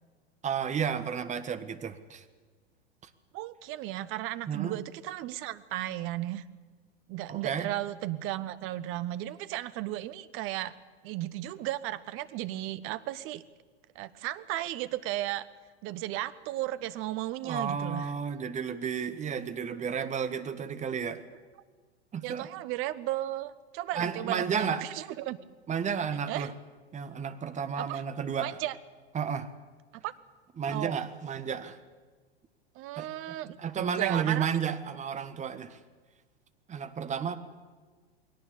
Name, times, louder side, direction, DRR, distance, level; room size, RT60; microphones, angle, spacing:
voice 1, 0.4-2.2 4.5-4.8 7.3-7.7 17.4-21.2 22.1-22.5 23.9-24.9 25.7-26.5 26.9-28.6 29.1-29.5 30.6-31.8 33.0-33.1 33.6-35.8 36.7-37.4, right 7 dB, 20° right, 11 dB, 1.4 m, -32 dB
voice 2, 3.3-6.4 7.1-10.7 11.0-13.4 13.9-15.5 15.8-18.1 22.2-25.4 26.3-26.5 27.8-28.0 28.4-28.7 29.9-30.1 30.7-30.9 32.7-33.6 34.0-34.5, right 15 dB, 40° right, 15 dB, 1.1 m, -35 dB
21.0 x 18.0 x 8.4 m, 1.4 s
figure-of-eight pair, 90°, 32 cm